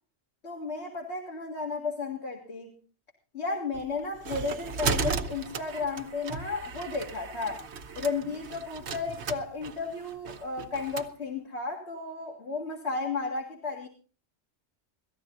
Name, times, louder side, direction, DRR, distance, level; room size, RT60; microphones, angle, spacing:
voice 1, 0.4-2.7 3.3-7.6 7.9-13.9, left 4 dB, 70° left, -1 dB, 2.4 m, -33 dB
sound 1, 3.7-11.1, right 5 dB, 75° right, 1.1 m, -35 dB
17.0 x 14.0 x 3.9 m, 0.38 s
omnidirectional pair, 1.2 m